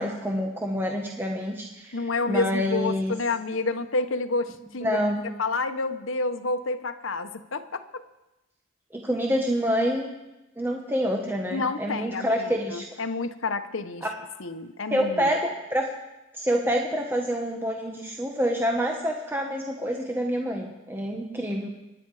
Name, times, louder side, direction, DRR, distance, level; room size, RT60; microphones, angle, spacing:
voice 1, 0.0-3.1 4.8-5.3 8.9-10.1 10.6-12.8 14.0-14.1 14.9-15.9 16.3-21.7, equal, 10° right, 1 dB, 1.2 m, -27 dB
voice 2, 1.9-5.0 5.4-8.0 11.5-14.1 14.4-15.3, left 3 dB, 85° left, 10 dB, 1.0 m, -29 dB
25.0 x 11.0 x 4.9 m, 0.98 s
head